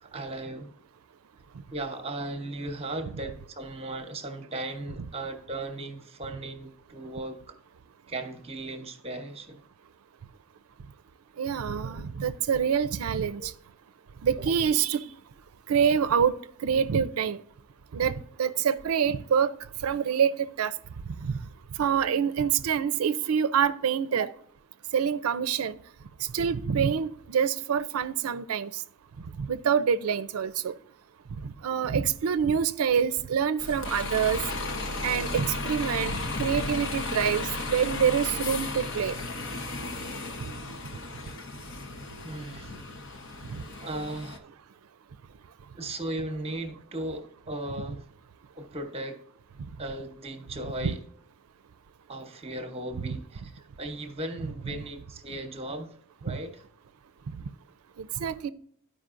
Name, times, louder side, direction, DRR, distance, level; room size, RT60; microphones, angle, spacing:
voice 1, 0.0-0.7 1.7-7.6 8.1-9.6 11.8-11.9 13.4-13.5 42.2-42.8 43.8-44.5 45.7-48.1 48.6-49.2 49.8-51.0 52.1-55.9 56.2-56.6, right 2 dB, 30° right, 5 dB, 0.9 m, -37 dB
voice 2, 11.4-13.5 14.2-15.0 15.7-16.4 16.6-17.4 17.9-19.5 19.8-20.7 21.2-21.4 21.8-24.3 24.9-25.8 26.3-28.8 29.4-30.7 31.4-34.4 35.0-36.1 36.4-39.1 43.5-43.6 50.8-50.9 56.3-56.4 58.0-58.5, right 7 dB, 80° right, 13 dB, 0.4 m, -26 dB
Bus, 33.6-44.4, left 2 dB, 60° left, 0.9 m, -34 dB
12.5 x 5.0 x 2.5 m, 0.64 s
head